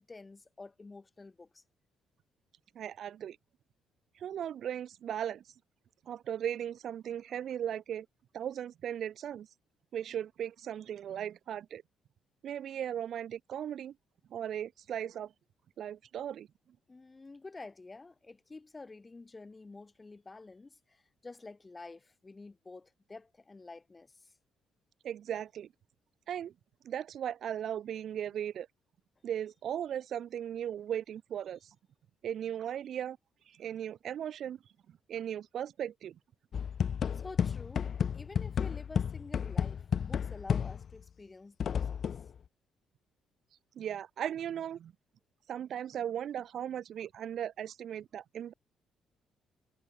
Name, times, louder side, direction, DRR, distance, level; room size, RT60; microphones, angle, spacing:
voice 1, 0.0-1.6 16.9-24.3 37.1-42.1, left 3 dB, 20° left, 7.0 m, -49 dB
voice 2, 2.8-3.4 4.2-5.4 6.1-8.1 8.3-9.5 9.9-11.8 12.4-13.9 14.3-15.3 15.8-16.5 25.0-25.7 26.3-26.5 26.8-28.7 29.2-31.7 32.2-33.2 33.5-34.6 35.1-36.1 43.8-44.9 45.5-48.5, right 10 dB, 65° right, 2.0 m, -37 dB
sound 1, 36.5-41.0 41.6-42.3, left 7 dB, 50° left, 1.6 m, -32 dB
cardioid pair, 95°, 0 cm